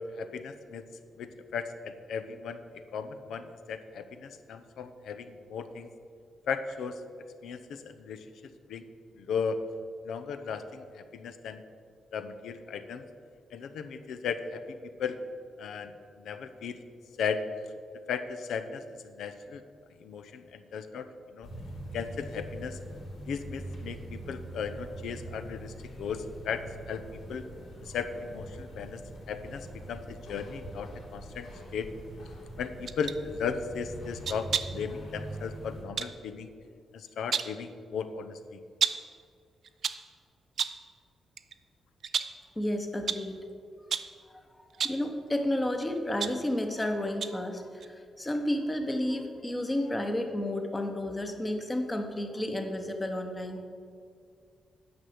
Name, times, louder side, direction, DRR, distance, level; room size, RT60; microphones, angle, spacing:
voice 1, 0.2-0.8 1.2-2.6 2.9-5.9 6.5-7.0 7.4-8.2 8.7-8.9 9.2-9.6 10.0-11.6 12.1-13.0 13.5-15.2 15.6-16.8 17.2-17.4 18.1-19.6 20.0-21.1 21.3-21.5 21.9-22.8 23.3-27.0 27.3-27.4 27.8-29.0 29.3-31.5 31.7-31.9 32.6-36.5 36.9-38.6, left 6 dB, 85° left, 9 dB, 0.7 m, -36 dB
sound 1, 21.4-35.8, right 1 dB, 70° left, 3.0 m, -43 dB
sound 2, 32.9-33.2 34.2-34.9 36.0-36.2 37.1-37.6 38.8-39.1 39.6-40.1 40.6-40.9 41.4-41.5 42.0-42.5 43.1-43.3 43.9-44.2 44.7-45.1 45.8-46.9 47.2-47.5 47.8-47.9, right 7 dB, 50° right, 0.4 m, -32 dB
voice 2, 42.6-43.4 44.8-53.6, left 1 dB, 15° left, 5 dB, 0.9 m, -31 dB
9.6 x 6.0 x 7.9 m, 2.3 s
wide cardioid pair, 165°, 0 cm